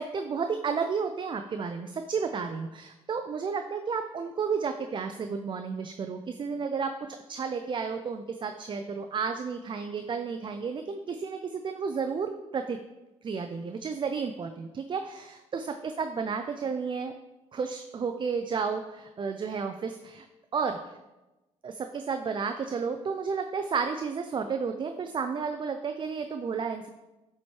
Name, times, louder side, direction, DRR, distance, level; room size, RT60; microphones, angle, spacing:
voice 1, 0.0-12.8 13.2-17.1 17.5-20.3 20.5-21.0 21.6-26.9, right 5 dB, 35° right, 7 dB, 0.4 m, -32 dB
7.6 x 4.3 x 3.1 m, 1.0 s
supercardioid pair, 70°, 13 cm